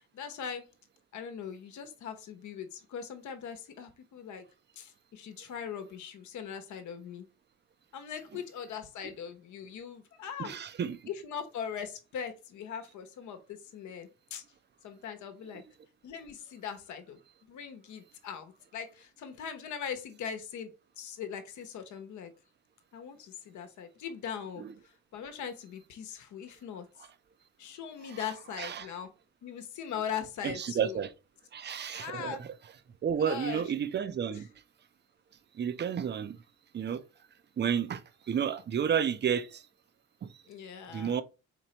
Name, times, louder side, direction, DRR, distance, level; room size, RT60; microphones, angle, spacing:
voice 1, 0.1-0.7 1.1-4.4 4.8-7.3 7.9-10.6 11.1-14.4 14.8-15.6 16.0-17.2 17.5-22.3 22.9-24.7 25.1-26.9 27.6-29.1 29.4-31.0 31.9-32.5 33.2-33.6 34.3-34.4 40.5-41.2, left 7 dB, 75° left, 0.9 m, -40 dB
voice 2, 10.4-11.0 15.5-15.6 24.6-24.7 28.1-28.9 30.4-31.1 31.5-32.5 33.0-34.5 35.5-36.4 36.7-37.0 37.6-38.0 38.3-39.6 40.2-40.3 40.9-41.2, right 8 dB, 35° right, 0.5 m, -31 dB
4.5 x 3.2 x 2.9 m
cardioid pair, 90°, 30 cm